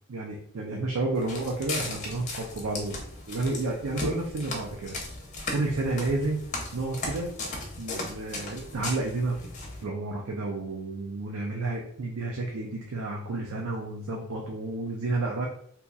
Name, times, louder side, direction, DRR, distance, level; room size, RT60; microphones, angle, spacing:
voice 1, 0.1-3.0 3.3-5.0 5.5-6.4 6.7-7.3 7.8-9.4 9.8-15.5, right 2 dB, 85° right, 0 dB, 0.5 m, -31 dB
Walk footsteps, 1.2-9.8, left 2 dB, 35° left, 0.8 m, -37 dB
2.8 x 2.3 x 3.8 m, 0.64 s
head